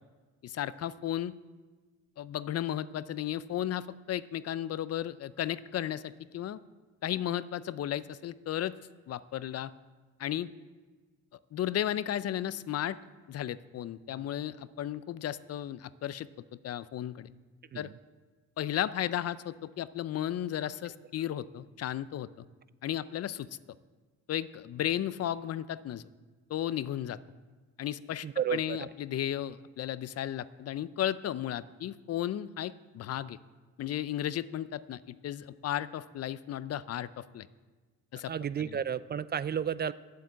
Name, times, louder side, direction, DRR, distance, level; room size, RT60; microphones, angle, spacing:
voice 1, 0.4-1.3 2.2-6.6 7.0-8.7 9.1-9.7 10.2-10.5 11.5-13.0 13.3-16.3 16.6-17.3 17.7-17.9 18.6-22.3 22.8-23.5 24.3-26.0 26.5-27.2 27.8-28.3 28.5-33.4 33.8-37.5 38.1-38.3, left 11 dB, 55° left, 16 dB, 0.5 m, -34 dB
voice 2, 28.2-28.9 38.3-39.9, right 8 dB, 35° right, 16 dB, 0.4 m, -32 dB
10.0 x 7.6 x 8.2 m, 1.3 s
cardioid pair, 90°, 30 cm